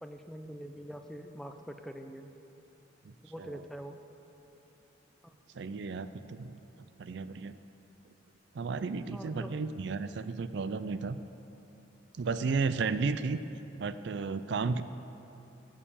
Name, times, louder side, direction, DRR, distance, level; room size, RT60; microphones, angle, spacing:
voice 1, 0.0-2.3 3.2-4.0 5.2-5.4 9.1-9.6, equal, ahead, 6 dB, 0.5 m, -44 dB
voice 2, 5.5-6.5 7.0-7.6 8.5-11.2 12.2-13.4 13.8-14.8, right 4 dB, 60° right, 13 dB, 0.4 m, -33 dB
15.5 x 7.3 x 7.0 m, 2.9 s
head